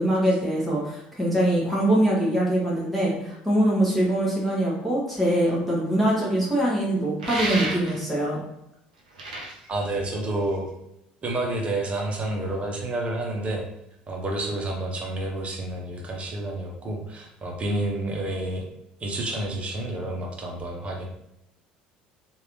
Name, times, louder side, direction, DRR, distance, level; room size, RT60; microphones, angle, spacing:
voice 1, 0.0-8.4, right 1 dB, ahead, -6 dB, 1.2 m, -23 dB
sound 1, 7.2-8.2 9.0-10.7, right 2 dB, 70° right, 0.6 m, -32 dB
voice 2, 9.7-10.7 11.2-13.6 14.1-18.6 19.0-21.1, right 2 dB, 30° right, 0 dB, 1.0 m, -29 dB
3.1 x 2.6 x 3.1 m, 0.84 s
figure-of-eight pair, 60°, 4 cm